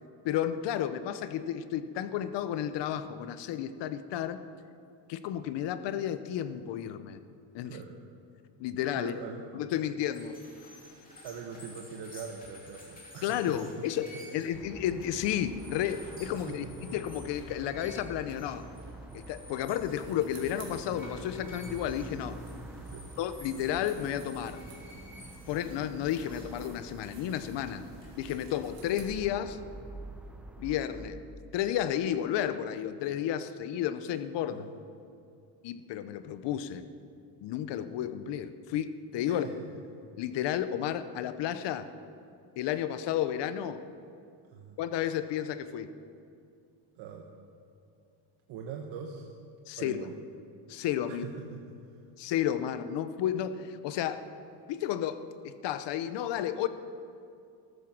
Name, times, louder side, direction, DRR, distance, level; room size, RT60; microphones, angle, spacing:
voice 1, 0.2-4.4 5.1-7.2 7.5-7.8 8.6-9.1 9.5-10.4 13.2-16.6 16.9-18.7 19.1-22.4 23.2-24.6 25.5-27.8 28.2-29.6 30.6-31.2 31.5-34.7 35.6-36.8 37.4-39.5 40.2-41.9 42.6-43.8 44.8-45.9 49.7-50.0 50.7-51.3 52.2-54.2 54.7-56.7, left 10 dB, 60° left, 12 dB, 0.8 m, -32 dB
voice 2, 9.0-9.4 11.2-13.7 16.5-17.0 22.9-23.1 34.5-34.7 39.3-39.7 44.5-44.8 47.0-47.5 48.5-49.3 49.8-50.2 51.1-51.8, right 6 dB, 65° right, 2 dB, 1.2 m, -43 dB
sound 1, 10.0-29.3, left 1 dB, 20° left, 2.6 m, -52 dB
sound 2, 14.5-31.1, right 2 dB, ahead, 0.6 m, -47 dB
sound 3, 19.9-29.0, right 6 dB, 80° right, 2.8 m, -55 dB
14.0 x 13.0 x 6.0 m, 2.5 s
cardioid pair, 165°, 47 cm